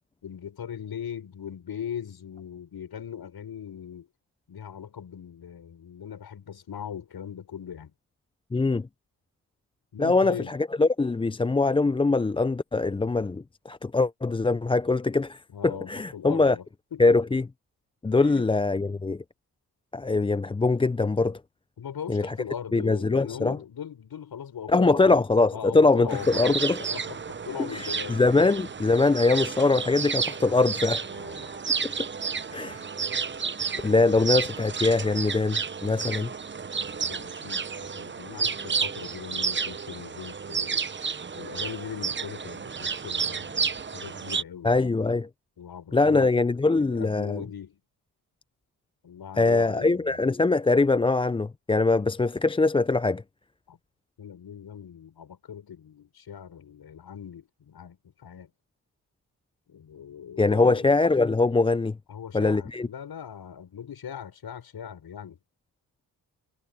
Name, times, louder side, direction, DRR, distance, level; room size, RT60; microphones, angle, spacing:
voice 1, 0.2-4.1 4.5-7.9 9.9-10.5 15.5-16.6 16.9-17.1 18.2-18.5 21.8-25.2 25.5-26.5 26.9-28.5 31.1-32.0 32.3-32.8 37.0-40.9 41.3-44.9 45.6-46.4 46.7-47.8 49.0-50.3 53.7-53.8 54.2-58.5 59.7-60.9 62.1-65.4, left 8 dB, 65° left, 6.0 m, -40 dB
voice 2, 8.5-8.9 10.0-16.6 17.0-17.5 18.0-19.2 19.9-21.4 22.1-22.3 22.7-23.6 24.7-26.8 27.6-31.1 32.5-32.8 33.8-36.3 44.6-45.3 45.9-47.4 49.4-53.2 60.4-61.9 62.3-62.9, left 3 dB, 15° left, 0.5 m, -23 dB
sound 1, 26.1-44.4, right 5 dB, 25° right, 0.8 m, -31 dB
supercardioid pair, 55°, 41 cm